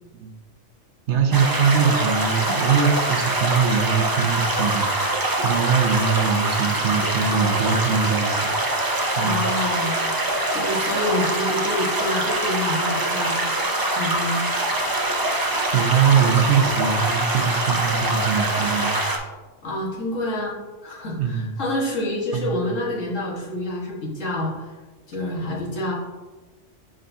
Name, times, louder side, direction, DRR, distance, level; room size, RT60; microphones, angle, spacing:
voice 1, 1.1-8.6 9.2-9.4 15.7-19.0 21.2-21.5 22.3-22.6, right 6 dB, 65° right, 3 dB, 1.1 m, -22 dB
sound 1, 1.3-19.2, right 1 dB, 25° right, 0.5 m, -24 dB
voice 2, 9.2-10.1 10.5-13.4 13.9-14.4 19.6-24.7 25.1-25.9, left 1 dB, 85° left, -3 dB, 1.9 m, -27 dB
10.0 x 3.9 x 2.7 m, 1.2 s
omnidirectional pair, 1.3 m